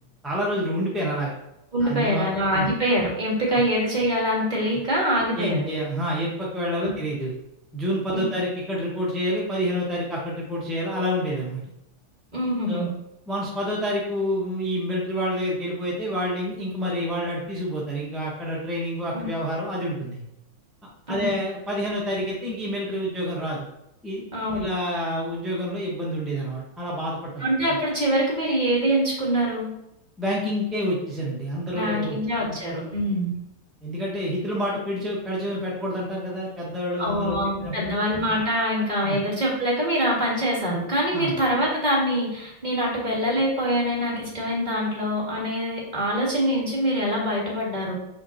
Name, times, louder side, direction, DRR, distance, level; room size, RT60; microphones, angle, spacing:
voice 1, 0.2-1.3 1.8-2.7 5.4-7.3 7.7-11.6 12.7-12.9 13.3-20.2 21.1-23.7 24.0-24.2 24.5-27.5 30.2-32.6 33.8-37.9 39.0-39.2 41.1-41.3, equal, ahead, -5 dB, 0.9 m, -28 dB
voice 2, 1.7-5.7 6.8-6.9 8.1-8.2 12.3-12.9 19.1-19.2 21.1-21.2 24.3-24.7 27.4-29.7 31.7-33.3 37.0-47.9, equal, 25° right, -4 dB, 1.7 m, -24 dB
6.7 x 5.7 x 3.0 m, 0.85 s
omnidirectional pair, 2.2 m